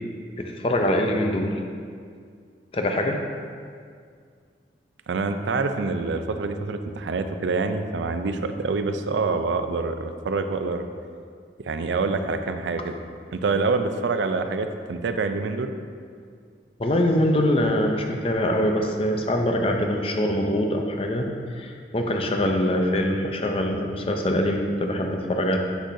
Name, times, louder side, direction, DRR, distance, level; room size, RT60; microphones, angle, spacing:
voice 1, 0.4-1.6 2.7-3.2 16.8-21.3 21.5-25.6, left 1 dB, 30° left, 3 dB, 0.5 m, -23 dB
voice 2, 5.1-10.8 11.6-13.0 13.3-15.7, right 3 dB, 90° right, 8 dB, 0.4 m, -26 dB
8.1 x 6.2 x 2.7 m, 2.1 s
head